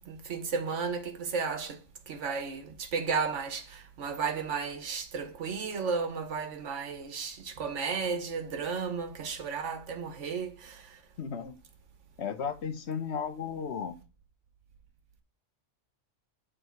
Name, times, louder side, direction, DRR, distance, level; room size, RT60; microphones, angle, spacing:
voice 1, 0.1-1.8 2.1-10.8, right 5 dB, 80° right, 1.5 m, -33 dB
voice 2, 11.2-11.6 12.2-14.0, left 6 dB, 65° left, 1.1 m, -34 dB
8.1 x 3.8 x 4.4 m
omnidirectional pair, 1.2 m